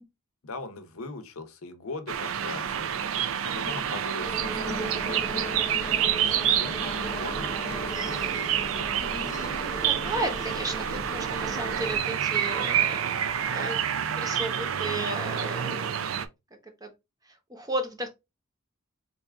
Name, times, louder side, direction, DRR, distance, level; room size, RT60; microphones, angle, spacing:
voice 1, 0.4-2.9 3.5-8.5, left 3 dB, 85° left, 0.7 m, -41 dB
sound 1, 2.1-16.3, right 9 dB, 70° right, 0.4 m, -28 dB
voice 2, 3.5-3.8 9.0-13.0 13.4-13.8 14.2-16.0 16.8-16.9 17.3-18.1, right 1 dB, 15° right, 0.8 m, -34 dB
sound 2, 4.2-12.0, equal, 15° left, 0.5 m, -37 dB
4.0 x 2.4 x 3.4 m
head